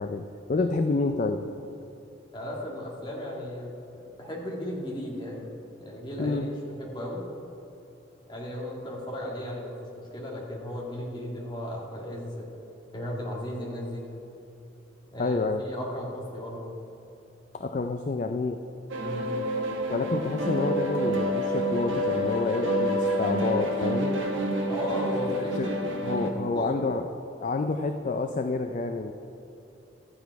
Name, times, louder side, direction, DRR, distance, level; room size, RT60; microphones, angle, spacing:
voice 1, 0.0-1.4 6.2-6.5 15.2-15.6 17.5-18.6 19.9-24.2 25.5-25.7 26.0-27.1 27.4-29.1, left 3 dB, 40° left, 7 dB, 0.4 m, -28 dB
voice 2, 2.3-6.5 6.8-7.3 8.3-12.5 12.9-14.1 15.1-16.7 19.0-19.3 24.7-25.7 26.5-26.8, left 1 dB, 25° left, -3 dB, 1.9 m, -35 dB
sound 1, 18.9-26.3, equal, 70° right, 1.2 m, -28 dB
12.5 x 8.2 x 4.6 m, 3.0 s
head